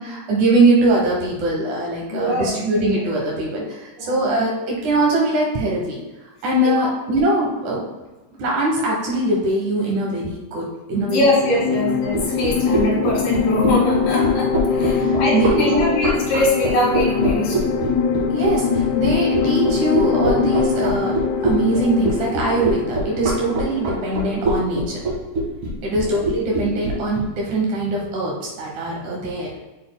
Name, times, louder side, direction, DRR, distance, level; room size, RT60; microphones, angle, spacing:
voice 1, 0.0-6.0 6.4-7.8 8.3-11.3 11.7-11.8 14.9-15.9 18.3-21.1 21.4-25.0 25.8-29.5, right 2 dB, 80° right, -3 dB, 1.7 m, -22 dB
voice 2, 2.1-2.5 2.9-3.1 4.0-4.3 6.6-6.9 11.1-17.7 25.8-26.1, left 1 dB, 50° left, -5 dB, 3.6 m, -22 dB
sound 1, 11.3-24.6, left 6 dB, 85° left, 2.3 m, -23 dB
sound 2, 12.1-27.2, right 2 dB, 60° right, 1.4 m, -23 dB
7.8 x 7.8 x 2.2 m, 1.1 s
omnidirectional pair, 5.4 m